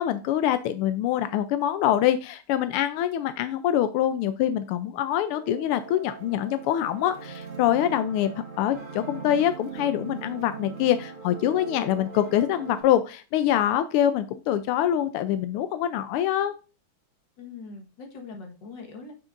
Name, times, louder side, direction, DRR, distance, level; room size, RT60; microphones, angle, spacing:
voice 1, 0.0-16.5, left 11 dB, 90° left, 11 dB, 1.5 m, -25 dB
sound 1, 5.3-12.8, right 6 dB, 25° right, 1.9 m, -40 dB
voice 2, 17.4-19.1, left 4 dB, 60° left, 3 dB, 2.0 m, -42 dB
7.3 x 6.3 x 2.5 m, 0.33 s
omnidirectional pair, 2.4 m